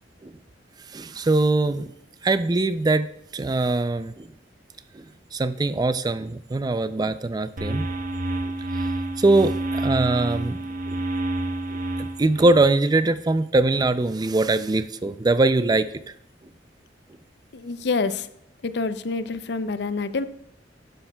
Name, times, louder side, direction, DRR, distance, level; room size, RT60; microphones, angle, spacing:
voice 1, 0.9-1.9 2.2-3.1 3.3-4.3 4.9-5.0 5.3-7.9 9.2-10.6 10.9-11.0 12.0-15.9, right 2 dB, 20° right, 13 dB, 0.4 m, -22 dB
sound 1, 7.6-12.7, right 2 dB, 50° right, 0.8 m, -28 dB
voice 2, 17.5-18.3 18.6-20.3, left 4 dB, 65° left, 12 dB, 0.5 m, -27 dB
12.0 x 10.0 x 2.3 m, 0.76 s
head